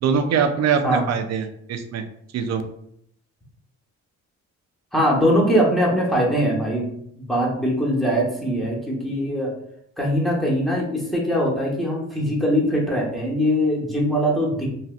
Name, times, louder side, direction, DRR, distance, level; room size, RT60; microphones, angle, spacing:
voice 1, 0.0-2.0 2.3-2.6, right 6 dB, 60° right, 7 dB, 0.5 m, -23 dB
voice 2, 4.9-9.5 10.0-14.7, equal, ahead, -4 dB, 1.0 m, -22 dB
3.1 x 2.7 x 2.3 m, 0.71 s
cardioid pair, 90°, 30 cm